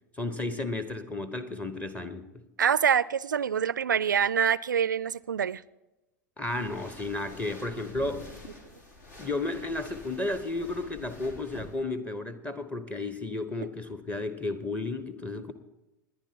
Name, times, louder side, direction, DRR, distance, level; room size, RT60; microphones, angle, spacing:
voice 1, 0.2-2.4 6.4-8.3 9.2-15.5, left 2 dB, 15° left, 10 dB, 1.0 m, -33 dB
voice 2, 2.6-5.6, right 8 dB, 75° right, 21 dB, 0.4 m, -25 dB
sound 1, 6.5-11.8, left 2 dB, 65° left, 2.9 m, -47 dB
28.5 x 10.5 x 2.8 m, 1.0 s
figure-of-eight pair, 85°, 10 cm